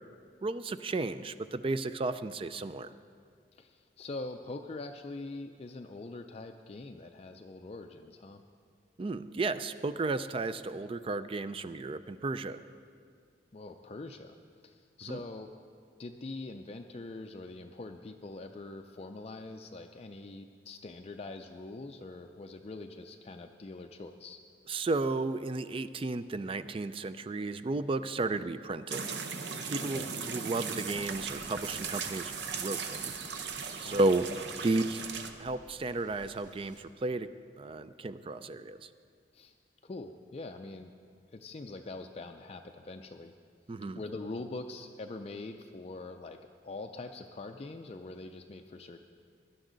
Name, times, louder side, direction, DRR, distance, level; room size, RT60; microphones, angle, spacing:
voice 1, 0.4-2.9 9.0-12.6 15.1-15.2 24.7-29.1 29.7-30.0 30.3-33.1 33.8-34.3 34.6-35.0 35.4-37.3 37.6-38.8 43.7-44.0, right 2 dB, 30° right, 13 dB, 0.4 m, -33 dB
voice 2, 3.5-8.4 13.5-14.4 14.6-15.5 16.0-24.4 29.8-30.1 33.8-34.1 39.3-39.5 39.8-40.9 41.3-43.3 43.9-49.0, left 2 dB, 35° left, 5 dB, 0.4 m, -43 dB
sound 1, 28.9-35.3, right 5 dB, 70° right, 0.8 m, -38 dB
Waves surf, 30.9-36.8, equal, 45° right, 1.5 m, -56 dB
17.5 x 12.0 x 3.9 m, 2.2 s
head